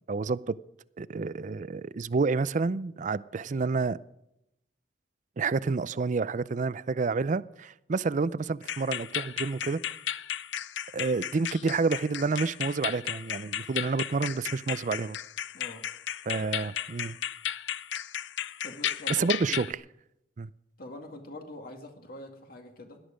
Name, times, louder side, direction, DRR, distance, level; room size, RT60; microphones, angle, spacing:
voice 1, 0.1-0.6 1.0-4.0 5.4-9.9 10.9-15.2 16.3-17.2 19.1-19.6 20.4-20.5, right 4 dB, 45° right, 18 dB, 0.4 m, -29 dB
sound 1, 8.6-19.7, left 10 dB, 90° left, 0.5 m, -35 dB
voice 2, 15.5-15.9 18.6-19.4 20.8-23.0, left 1 dB, 55° left, 4 dB, 2.1 m, -44 dB
17.5 x 11.5 x 5.1 m, 0.84 s
head